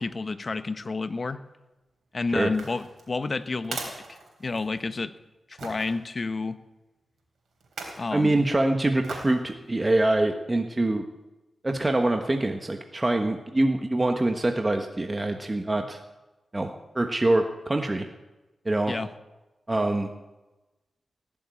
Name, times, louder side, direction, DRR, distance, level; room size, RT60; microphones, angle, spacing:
voice 1, 0.0-1.4 2.1-5.1 5.5-6.6 8.0-8.4 18.9-19.1, left 3 dB, 45° left, 11 dB, 1.0 m, -30 dB
sound 1, 2.5-4.9 5.6-5.9 7.6-8.1 9.0-9.4 9.9-10.0, right 4 dB, 80° right, 3.6 m, -39 dB
voice 2, 8.1-11.0 11.6-16.0 16.5-18.1 18.6-19.0 19.7-20.1, right 2 dB, 25° right, 4 dB, 1.3 m, -24 dB
18.0 x 7.4 x 8.5 m, 1.1 s
cardioid pair, 50°, 0 cm